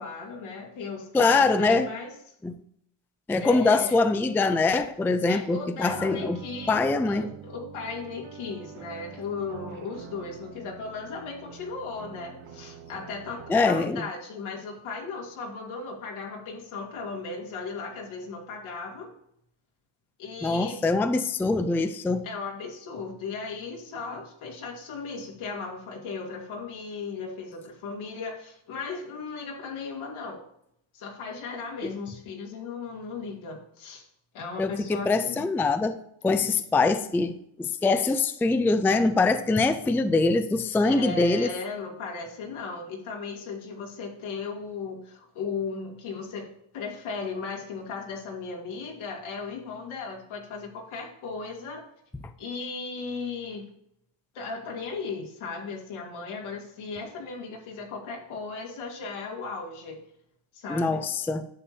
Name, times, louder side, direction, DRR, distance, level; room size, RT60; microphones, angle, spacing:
voice 1, 0.0-2.1 3.4-4.0 5.3-19.1 20.2-20.8 22.2-30.4 30.9-34.0 34.3-35.4 36.4-36.5 40.8-51.8 52.4-53.7 54.3-60.0 60.5-61.0, left 4 dB, 80° left, 0 dB, 2.7 m, -36 dB
voice 2, 1.1-1.9 2.4-2.5 3.3-6.4 6.7-7.3 13.5-14.0 20.4-22.3 31.8-31.9 34.6-36.0 36.2-41.5 60.7-61.4, left 3 dB, 5° left, 10 dB, 0.3 m, -23 dB
sound 1, 5.8-13.9, right 7 dB, 85° right, 1.2 m, -45 dB
10.0 x 7.1 x 2.7 m, 0.75 s
cardioid pair, 130°, 47 cm